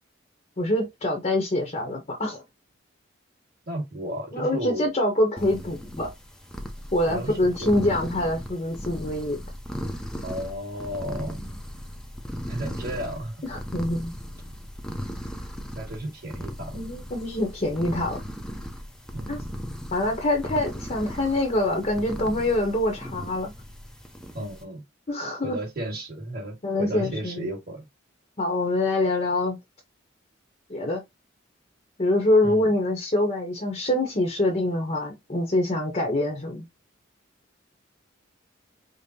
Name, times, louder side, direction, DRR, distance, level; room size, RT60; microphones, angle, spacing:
voice 1, 0.6-2.4 4.3-6.1 6.9-9.4 13.4-14.1 16.7-18.2 19.3-19.4 19.9-23.5 25.1-25.6 26.6-27.5 28.4-29.6 30.7-31.0 32.0-36.6, left 1 dB, 35° left, 0.7 m, -25 dB
voice 2, 3.7-4.9 7.1-8.0 10.2-11.4 12.5-13.4 15.7-16.8 19.1-19.4 24.3-24.8 25.4-27.9 32.4-32.7, right 1 dB, 50° right, 1.8 m, -33 dB
sound 1, 5.4-24.6, equal, 5° left, 0.5 m, -37 dB
5.1 x 2.0 x 2.7 m
head